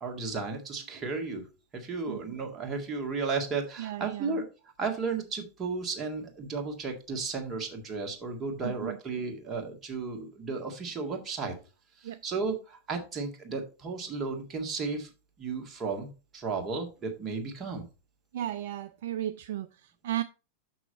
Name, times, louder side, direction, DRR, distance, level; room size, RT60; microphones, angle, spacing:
voice 1, 0.0-1.4 1.7-4.4 4.8-11.5 12.0-15.1 15.4-17.9, right 4 dB, 25° right, 3 dB, 1.8 m, -34 dB
voice 2, 3.8-4.4 8.6-9.0 12.0-12.2 18.3-20.2, right 12 dB, 55° right, 12 dB, 0.4 m, -35 dB
6.3 x 6.0 x 4.1 m, 0.32 s
figure-of-eight pair, 90°, 0 cm